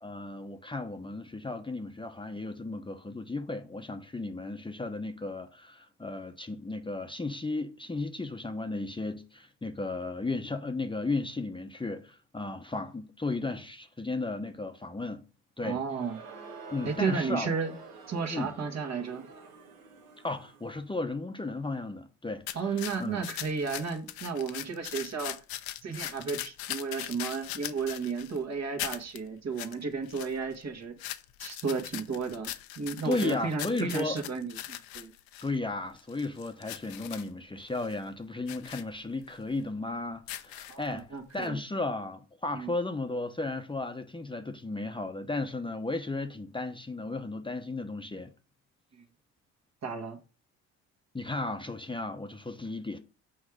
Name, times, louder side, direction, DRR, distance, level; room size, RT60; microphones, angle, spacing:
voice 1, 0.0-15.2 15.6-15.8 16.7-17.5 18.3-18.5 20.2-22.7 23.0-23.2 33.0-34.2 35.4-48.3 51.1-53.0, left 2 dB, 15° left, 0.9 m, -34 dB
voice 2, 15.6-16.2 16.8-17.7 18.1-19.2 22.5-25.4 25.8-31.0 31.4-35.1 40.7-41.6 42.5-42.7 49.8-50.2, right 5 dB, 45° right, 1.7 m, -33 dB
Crowd, 15.8-20.8, right 3 dB, 70° right, 1.8 m, -48 dB
sound 1, 22.5-28.4 28.8-29.2 29.6-29.7 30.0-30.6 31.0-35.5 36.0-37.3 37.7-37.9 38.5-38.8 39.3-39.4 40.1-41.0 41.4-41.5, left 14 dB, 70° left, 0.8 m, -40 dB
6.3 x 4.7 x 5.0 m
hypercardioid pair, 60°, 37 cm